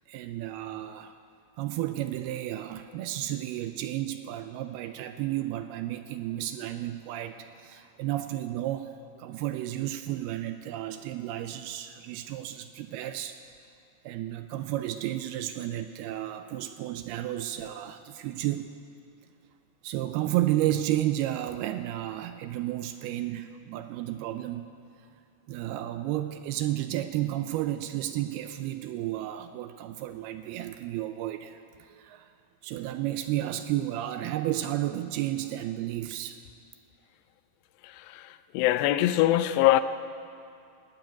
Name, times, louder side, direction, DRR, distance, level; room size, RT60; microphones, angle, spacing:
voice 1, 0.1-1.1 1.6-13.4 14.0-18.7 19.8-24.6 25.5-32.3 32.6-36.4, right 13 dB, 85° right, 2.3 m, -32 dB
voice 2, 37.8-38.3 38.5-39.8, left 14 dB, 90° left, 2.8 m, -23 dB
19.5 x 7.6 x 9.2 m
omnidirectional pair, 4.9 m